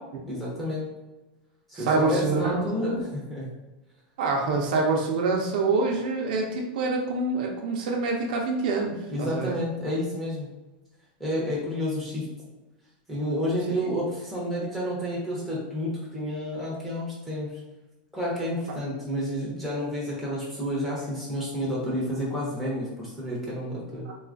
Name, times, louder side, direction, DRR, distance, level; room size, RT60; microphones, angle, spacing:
voice 1, 0.3-0.9 1.7-3.5 9.1-10.5 11.2-12.3 13.1-17.6 18.1-24.1, equal, 5° left, -7 dB, 0.8 m, -30 dB
voice 2, 1.8-3.0 4.2-9.5 13.7-13.8 24.1-24.2, right 3 dB, 60° right, 0 dB, 0.5 m, -26 dB
3.7 x 2.3 x 2.5 m, 1.1 s
supercardioid pair, 170°, 5 cm